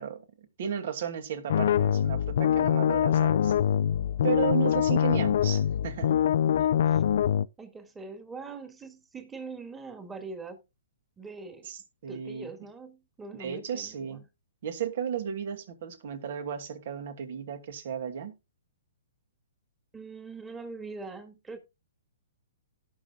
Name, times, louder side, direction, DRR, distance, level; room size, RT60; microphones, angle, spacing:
voice 1, 0.0-3.5 4.2-6.2 11.7-12.5 13.4-14.2 14.6-18.3, right 7 dB, 60° right, 2.3 m, -34 dB
sound 1, 1.5-7.5, left 9 dB, 60° left, 0.4 m, -24 dB
voice 2, 6.5-7.0 7.6-10.6 11.2-11.7 12.1-14.2 19.9-21.6, right 4 dB, 10° right, 2.0 m, -43 dB
17.5 x 6.2 x 2.4 m
hypercardioid pair, 135°, 0 cm